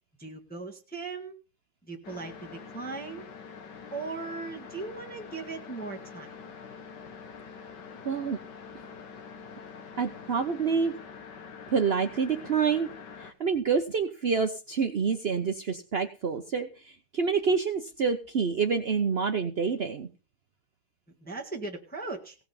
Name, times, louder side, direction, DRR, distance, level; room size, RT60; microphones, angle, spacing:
voice 1, 0.2-1.3 1.9-3.3 3.9-6.3 21.2-22.4, right 3 dB, 5° left, 1 dB, 1.7 m, -38 dB
sound 1, 2.0-13.3, left 6 dB, 55° left, 1.8 m, -45 dB
voice 2, 8.0-8.4 10.0-10.9 11.7-12.9 13.2-20.1, right 5 dB, 50° right, 6 dB, 0.7 m, -27 dB
17.0 x 6.0 x 7.1 m, 0.34 s
omnidirectional pair, 2.3 m